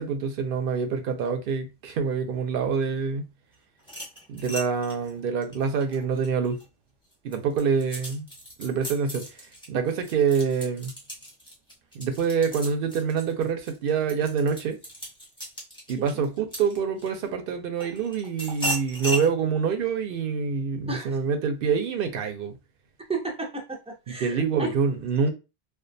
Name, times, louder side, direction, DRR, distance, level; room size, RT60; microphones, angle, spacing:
voice 1, 0.0-3.2 4.3-6.6 7.2-8.3 8.6-9.4 9.7-10.9 11.9-14.8 15.9-22.5 24.2-25.3, right 6 dB, 65° right, 0.7 m, -26 dB
sound 1, 3.8-6.6 7.1-17.3 17.8-19.3, equal, 5° left, 0.8 m, -36 dB
voice 2, 23.1-24.7, right 3 dB, 10° right, 0.3 m, -33 dB
2.3 x 2.2 x 2.6 m
omnidirectional pair, 1.0 m